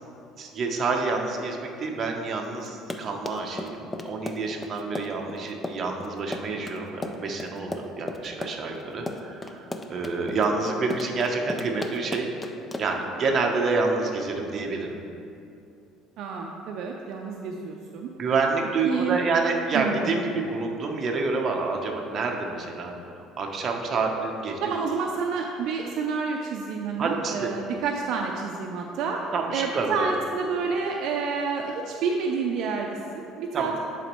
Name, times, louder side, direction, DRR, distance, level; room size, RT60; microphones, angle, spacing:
voice 1, 0.4-9.6 9.9-12.3 12.8-15.0 18.2-22.9 23.4-24.6 27.0-27.5 29.3-30.2 33.5-33.8, right 4 dB, 40° right, 1 dB, 0.8 m, -28 dB
Run, 2.7-13.1, left 2 dB, 15° left, 0.4 m, -35 dB
voice 2, 16.2-18.1 18.8-19.2 19.7-20.1 24.6-29.2 29.5-33.8, right 5 dB, 65° right, 1 dB, 0.5 m, -29 dB
10.0 x 4.1 x 3.0 m, 2.6 s
cardioid pair, 125°, 0 cm